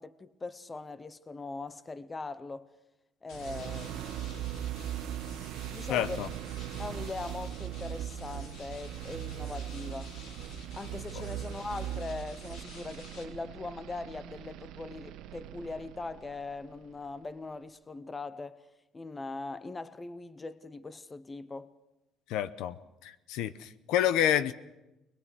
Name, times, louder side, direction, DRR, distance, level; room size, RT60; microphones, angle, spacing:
voice 1, 0.0-2.7 3.2-4.4 5.7-6.3 6.8-10.1 10.7-18.7 18.9-21.7, left 3 dB, 15° left, 0.7 m, -41 dB
sound 1, 3.3-13.2, left 3 dB, 70° left, 3.7 m, -52 dB
sound 2, 3.3-17.2, right 11 dB, 80° right, 0.9 m, -40 dB
voice 2, 5.9-6.3 22.3-22.8 23.0-24.5, left 10 dB, 85° left, 0.8 m, -28 dB
21.5 x 21.0 x 6.3 m
cardioid pair, 165°, 0 cm